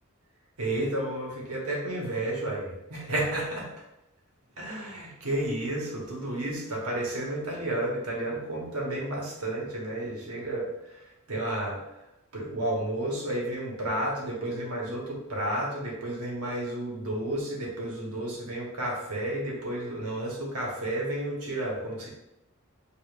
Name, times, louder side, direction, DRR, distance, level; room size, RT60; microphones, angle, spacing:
voice 1, 0.6-3.6 4.6-11.8 12.3-22.1, right 1 dB, 85° right, -2 dB, 1.1 m, -32 dB
5.0 x 2.5 x 2.4 m, 0.89 s
head